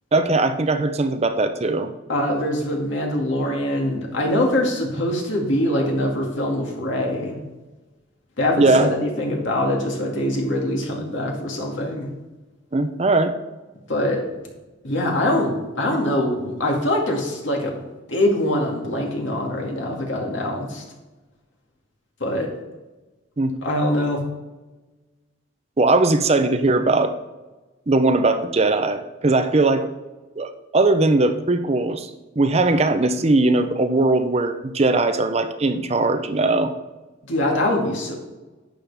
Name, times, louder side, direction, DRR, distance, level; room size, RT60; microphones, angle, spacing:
voice 1, 0.1-1.9 8.6-8.9 12.7-13.3 23.4-23.6 25.8-27.1 27.9-29.9 30.4-32.1 32.4-36.7, right 2 dB, 35° right, 8 dB, 0.6 m, -19 dB
voice 2, 2.1-7.4 8.4-12.1 13.9-14.2 14.8-17.8 18.1-20.8 22.2-22.5 23.6-24.2 37.3-38.2, left 1 dB, 75° left, -1 dB, 2.2 m, -23 dB
11.5 x 8.0 x 3.5 m, 1.1 s
head